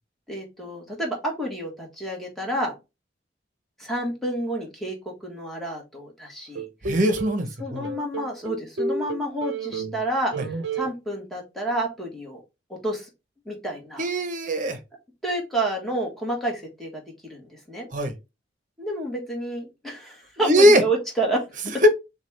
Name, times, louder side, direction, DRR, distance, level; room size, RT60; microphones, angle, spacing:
voice 1, 0.3-2.7 3.8-5.0 5.2-6.6 7.6-10.3 10.7-12.4 12.8-13.1 13.4-14.0 15.2-17.0 17.3-17.9 18.8-21.4, right 1 dB, ahead, 1.5 m, -29 dB
sound 1, 6.6-7.4 7.8-10.0 10.3-10.9, right 4 dB, 75° right, 0.7 m, -31 dB
voice 2, 6.8-7.9 10.4-10.5 14.0-14.8 17.9-18.1 20.4-20.8 21.7-21.9, equal, 45° right, 0.9 m, -20 dB
6.4 x 2.4 x 3.2 m
head